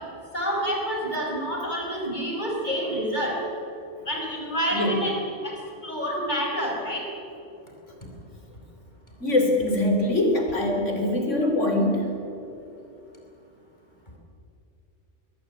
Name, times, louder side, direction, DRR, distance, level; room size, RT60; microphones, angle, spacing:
voice 1, 0.3-3.4 4.1-7.1, equal, 40° left, 0 dB, 5.7 m, -28 dB
voice 2, 9.2-12.1, left 1 dB, 80° left, 3 dB, 4.4 m, -23 dB
21.5 x 21.5 x 9.7 m, 2.8 s
omnidirectional pair, 1.3 m